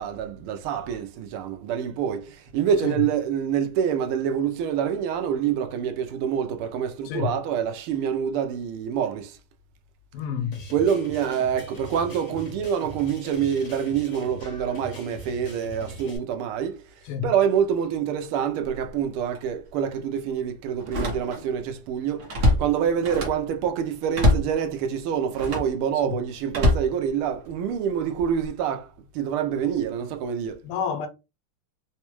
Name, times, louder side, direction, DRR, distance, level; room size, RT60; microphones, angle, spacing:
voice 1, 0.0-9.4 10.7-16.8 17.2-22.3 22.6-28.9 29.1-30.6, right 8 dB, 80° right, 1.5 m, -26 dB
voice 2, 10.1-10.6 17.1-17.3 26.0-26.2 30.6-31.1, left 7 dB, 85° left, 1.7 m, -29 dB
sound 1, 10.5-16.2, equal, 60° left, 1.7 m, -41 dB
Slam, 18.6-18.9 19.3-19.5 20.8-21.6 21.9-23.5 24.1-24.6 25.3-25.8 26.5-27.6 28.2-28.5, left 1 dB, 50° right, 0.9 m, -24 dB
4.1 x 2.2 x 3.0 m
omnidirectional pair, 2.4 m